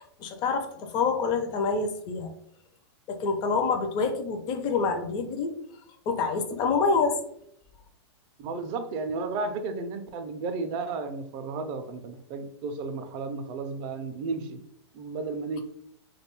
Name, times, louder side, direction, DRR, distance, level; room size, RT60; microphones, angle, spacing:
voice 1, 0.0-2.3 3.1-5.6 6.1-7.2, left 4 dB, 30° left, 6 dB, 0.4 m, -27 dB
voice 2, 8.4-14.6 14.9-15.6, right 4 dB, 35° right, 7 dB, 0.4 m, -33 dB
2.6 x 2.2 x 2.9 m, 0.72 s
hypercardioid pair, 130°, 15 cm